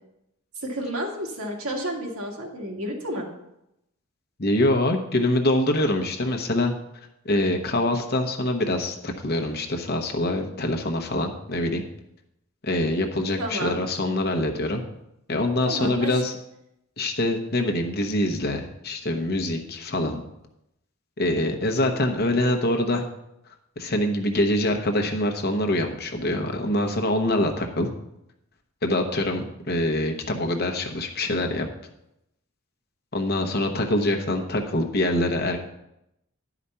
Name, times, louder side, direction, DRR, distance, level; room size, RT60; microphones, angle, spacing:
voice 1, 0.6-3.3 13.4-13.8 15.7-16.2, right 1 dB, 75° right, 0 dB, 2.0 m, -31 dB
voice 2, 4.4-6.7 7.2-11.8 12.6-14.8 15.3-16.3 17.0-20.2 21.2-23.0 23.8-27.9 28.8-31.7 33.1-35.6, left 1 dB, 45° left, 3 dB, 1.0 m, -24 dB
11.0 x 5.0 x 5.6 m, 0.83 s
head